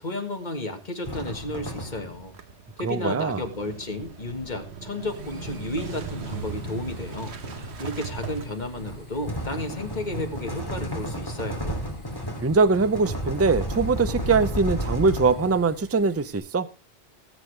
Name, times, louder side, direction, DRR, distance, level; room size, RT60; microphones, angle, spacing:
voice 1, 0.0-2.3 2.8-7.3 7.8-11.8, left 2 dB, 40° left, 5 dB, 1.9 m, -32 dB
sound 1, 1.0-2.4 3.6-15.8, equal, 20° left, 2.8 m, -34 dB
Motorcycle / Engine starting, 2.2-9.5, right 6 dB, 70° right, 1.4 m, -39 dB
voice 2, 2.8-3.4 12.4-16.7, right 4 dB, 20° right, 14 dB, 0.5 m, -22 dB
Fire, 5.1-16.4, right 2 dB, 90° right, 7.7 m, -52 dB
20.0 x 8.4 x 3.3 m, 0.28 s
omnidirectional pair, 1.1 m